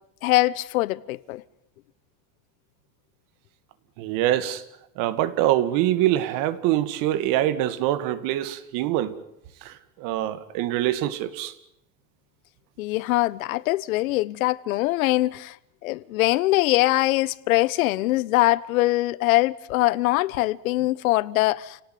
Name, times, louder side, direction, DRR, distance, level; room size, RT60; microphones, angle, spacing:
voice 1, 0.2-1.4 12.8-15.6 15.8-21.8, left 18 dB, 90° left, 1.1 m, -22 dB
voice 2, 4.0-4.6 5.0-9.2 9.6-11.5, right 13 dB, 50° right, 2.1 m, -24 dB
29.0 x 18.0 x 9.4 m
supercardioid pair, 150°, 40 cm